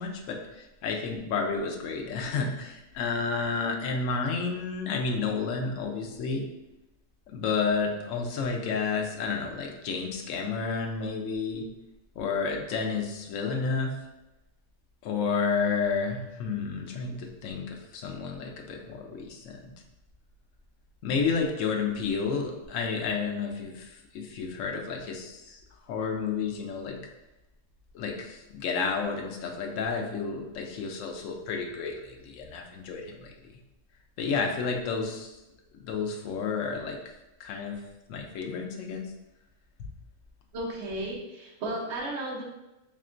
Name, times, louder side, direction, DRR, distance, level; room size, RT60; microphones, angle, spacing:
voice 1, 0.0-6.4 7.3-11.7 12.2-13.9 15.0-19.7 21.0-25.6 25.9-27.0 27.9-33.3 34.2-35.3 35.7-37.0 37.4-37.8 38.1-39.1 39.8-39.9, left 5 dB, 70° left, 2 dB, 0.9 m, -31 dB
voice 2, 40.5-42.4, right 1 dB, 55° right, -3 dB, 1.0 m, -34 dB
3.6 x 3.2 x 2.5 m, 0.96 s
omnidirectional pair, 1.5 m